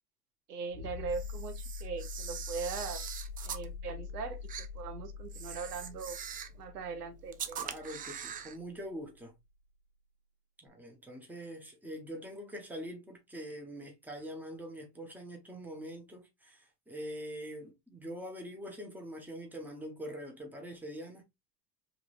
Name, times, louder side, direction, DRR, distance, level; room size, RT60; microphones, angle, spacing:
voice 1, 0.5-3.0 3.4-6.2 6.6-7.7, right 5 dB, 70° right, 1.1 m, -40 dB
sound 1, 0.7-9.2 10.7-10.8, left 5 dB, 85° left, 0.8 m, -44 dB
Camera, 1.1-3.7 4.5-4.7 5.3-6.6 7.3-8.6, right 8 dB, 20° right, 0.4 m, -42 dB
voice 2, 7.6-9.4 10.6-21.2, equal, 5° right, 1.5 m, -44 dB
4.8 x 3.4 x 2.6 m
figure-of-eight pair, 80°, 47 cm